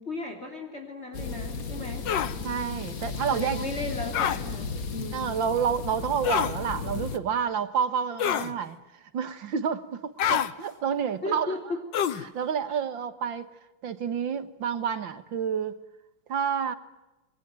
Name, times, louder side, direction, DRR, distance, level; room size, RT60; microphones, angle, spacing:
voice 1, 0.0-2.1 3.3-5.5 11.2-11.8 12.7-12.8, left 2 dB, 35° left, 4 dB, 3.4 m, -36 dB
sound 1, 1.1-7.2, left 4 dB, 50° left, 2.0 m, -35 dB
sound 2, 2.1-2.3 4.1-4.4 6.2-6.6 8.2-8.5 10.2-10.5 11.9-12.3, left 9 dB, 75° left, 1.8 m, -26 dB
voice 2, 2.4-3.6 5.1-8.8 9.1-11.5 12.3-13.5 13.8-15.7 16.3-16.7, right 7 dB, 80° right, 12 dB, 2.3 m, -29 dB
27.5 x 23.0 x 9.2 m, 1.0 s
omnidirectional pair, 2.1 m